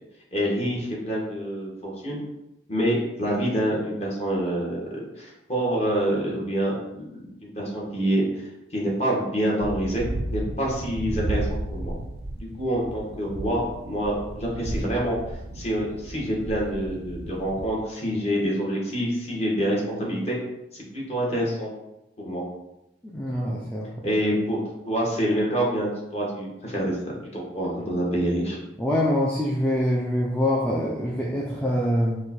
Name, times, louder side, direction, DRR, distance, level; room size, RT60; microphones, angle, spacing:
voice 1, 0.3-2.2 2.7-8.4 8.7-10.0 10.3-11.9 12.4-15.2 15.5-20.4 20.7-21.7 22.2-22.4 24.0-27.0 27.3-28.6, equal, 35° left, -4 dB, 1.3 m, -26 dB
sound 1, 9.6-17.7, right 1 dB, 65° right, 0.5 m, -33 dB
voice 2, 23.0-23.9 28.8-32.2, left 1 dB, 5° left, -4 dB, 0.4 m, -24 dB
4.9 x 2.3 x 4.3 m, 0.90 s
head